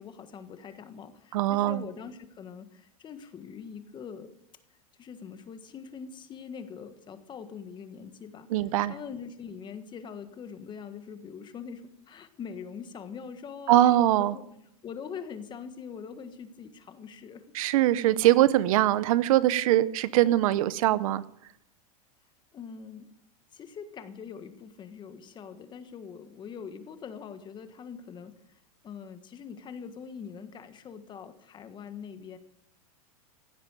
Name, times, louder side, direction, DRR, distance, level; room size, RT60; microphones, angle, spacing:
voice 1, 0.0-4.3 5.0-8.5 8.9-17.4 22.5-23.1 23.5-28.3 28.8-32.4, left 6 dB, 25° left, 10 dB, 1.4 m, -43 dB
voice 2, 1.3-1.8 8.5-8.9 13.7-14.4 17.5-21.2, right 14 dB, 70° right, 17 dB, 0.7 m, -22 dB
16.0 x 7.5 x 9.0 m, 0.76 s
supercardioid pair, 135°, 19 cm